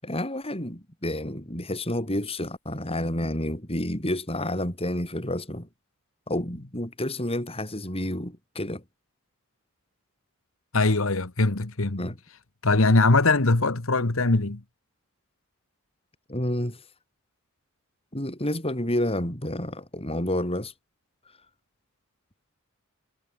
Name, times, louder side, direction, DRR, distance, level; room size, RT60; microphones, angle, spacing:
voice 1, 0.0-5.7 6.3-8.8 12.0-12.2 16.3-16.8 18.1-20.7, left 1 dB, 25° left, 7.7 m, -29 dB
voice 2, 10.7-12.1 12.6-14.6, left 3 dB, 70° left, 1.6 m, -21 dB
head